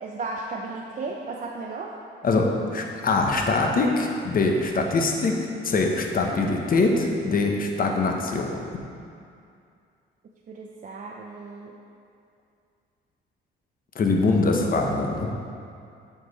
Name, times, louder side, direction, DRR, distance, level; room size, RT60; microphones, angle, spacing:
voice 1, 0.0-2.0 10.5-11.7, right 3 dB, 40° right, -1 dB, 0.7 m, -35 dB
voice 2, 2.2-8.6 13.9-15.3, left 3 dB, 45° left, 1 dB, 1.0 m, -23 dB
8.6 x 5.2 x 4.2 m, 2.4 s
cardioid pair, 90°, 20 cm